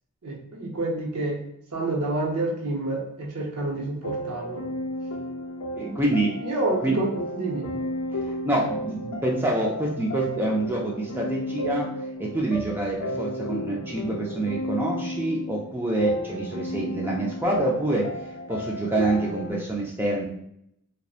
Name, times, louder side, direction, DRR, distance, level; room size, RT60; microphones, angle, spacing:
voice 1, 0.2-1.4 1.7-4.7 5.8-7.7, right 2 dB, 85° right, -1 dB, 0.7 m, -29 dB
sound 1, 4.0-19.5, equal, 70° left, 0.4 m, -33 dB
voice 2, 5.8-6.3 6.8-7.0 8.2-11.9 12.2-18.1 18.5-20.2, right 1 dB, 10° right, -2 dB, 0.3 m, -26 dB
2.7 x 2.0 x 2.3 m, 0.75 s
head